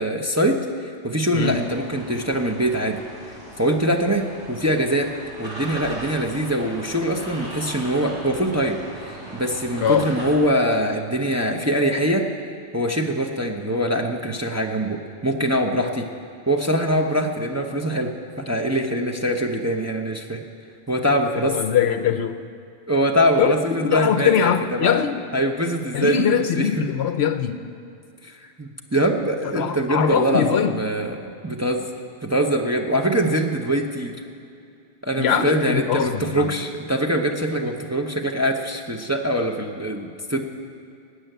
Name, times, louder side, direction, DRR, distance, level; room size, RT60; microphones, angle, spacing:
voice 1, 0.0-3.0 3.6-5.1 5.4-12.3 12.7-16.1 16.5-20.4 20.9-21.6 22.9-25.0 25.3-26.7 28.2-31.2 31.4-31.9 32.2-34.2 35.0-40.4, equal, 15° right, 1 dB, 0.7 m, -23 dB
voice 2, 1.3-1.7 9.8-10.1 21.3-22.4 23.4-23.5 23.8-25.2 25.9-27.6 29.6-30.8 35.2-36.5, left 8 dB, 65° left, 9 dB, 0.8 m, -22 dB
sound 1, 1.3-10.4, right 1 dB, 85° right, 3.5 m, -38 dB
19.0 x 6.5 x 9.2 m, 2.5 s
omnidirectional pair, 1.2 m